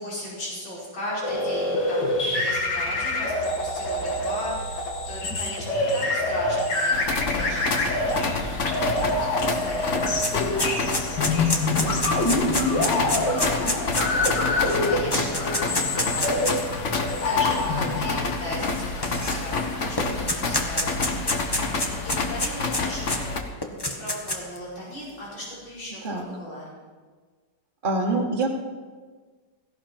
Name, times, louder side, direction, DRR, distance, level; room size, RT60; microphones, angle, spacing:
voice 1, 0.0-16.4 17.0-23.4 23.7-26.7, left 1 dB, 80° left, -7 dB, 5.8 m, -38 dB
sound 1, 1.2-18.2, left 2 dB, 60° left, 2.7 m, -26 dB
sound 2, 6.9-23.4, left 3 dB, 45° left, 1.3 m, -29 dB
sound 3, 9.4-9.5 9.7-16.7 17.4-17.5 18.6-19.6 20.0-23.2 23.6-24.6, left 1 dB, 15° left, 1.0 m, -28 dB
voice 2, 27.8-28.5, right 2 dB, 25° right, 0 dB, 1.8 m, -24 dB
17.0 x 15.0 x 4.5 m, 1.4 s
omnidirectional pair, 2.2 m